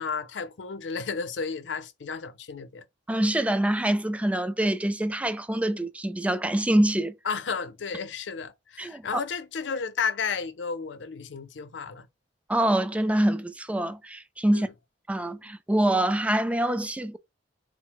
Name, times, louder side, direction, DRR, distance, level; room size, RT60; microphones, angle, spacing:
voice 1, 0.0-2.8 7.3-12.1 14.5-14.6, left 5 dB, 75° left, 0.6 m, -32 dB
voice 2, 3.1-7.1 8.8-9.2 12.5-14.7 15.1-17.2, right 1 dB, 5° right, 0.3 m, -25 dB
3.9 x 2.1 x 4.5 m
head